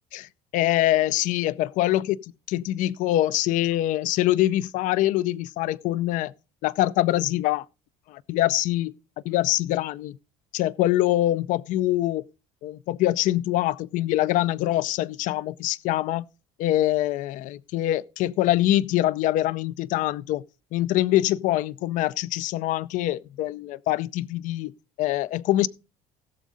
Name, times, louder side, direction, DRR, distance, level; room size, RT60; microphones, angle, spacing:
voice 1, 0.1-2.2 2.5-6.3 6.6-7.6 8.1-8.9 9.2-10.2 10.5-12.2 12.6-16.3 16.6-20.4 20.7-24.7 25.0-25.7, left 15 dB, 65° left, 0.5 m, -24 dB
16.5 x 7.3 x 3.8 m
cardioid pair, 125°, 14 cm